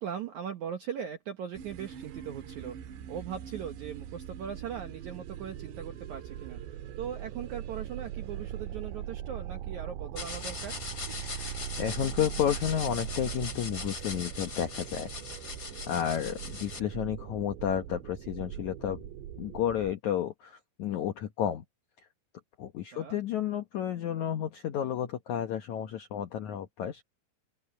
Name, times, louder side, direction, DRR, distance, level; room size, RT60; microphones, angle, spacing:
voice 1, 0.0-10.8 22.9-23.2, right 8 dB, 70° right, 1.8 m, -39 dB
sound 1, 1.6-19.9, right 10 dB, 90° right, 3.8 m, -41 dB
sound 2, 10.1-16.8, left 4 dB, 30° left, 2.4 m, -40 dB
voice 2, 11.2-15.5 15.9-19.0 19.4-21.6 22.6-27.0, left 9 dB, 75° left, 1.7 m, -32 dB
open air
omnidirectional pair, 4.9 m